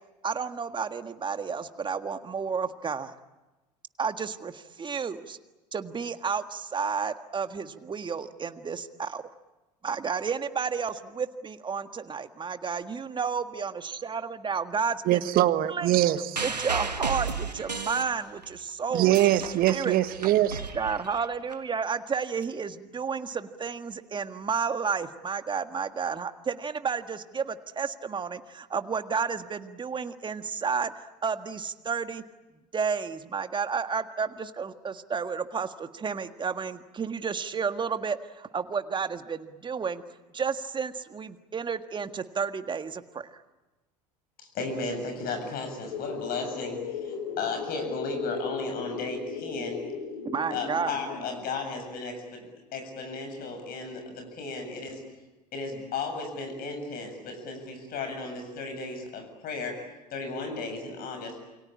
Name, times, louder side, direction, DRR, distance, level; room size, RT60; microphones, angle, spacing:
voice 1, 0.2-3.1 4.0-5.4 5.7-9.2 9.8-15.4 15.7-15.9 16.4-19.2 19.7-20.0 20.7-32.2 32.7-40.0 40.3-43.4 50.2-50.9, right 6 dB, 25° right, 9 dB, 1.7 m, -31 dB
voice 2, 15.1-16.5 18.9-20.6, right 14 dB, 45° right, 12 dB, 1.5 m, -23 dB
sound 1, 16.4-18.6 18.9-21.5 22.4-22.5, right 4 dB, 90° right, 1.7 m, -34 dB
voice 3, 44.4-49.8 50.5-52.4 52.7-55.0 55.5-59.8 60.1-61.4, left 3 dB, 45° left, 5 dB, 7.7 m, -35 dB
sound 2, 45.9-51.2, left 6 dB, 70° left, 5.3 m, -36 dB
28.5 x 23.5 x 8.8 m, 1.1 s
figure-of-eight pair, 70°, 21 cm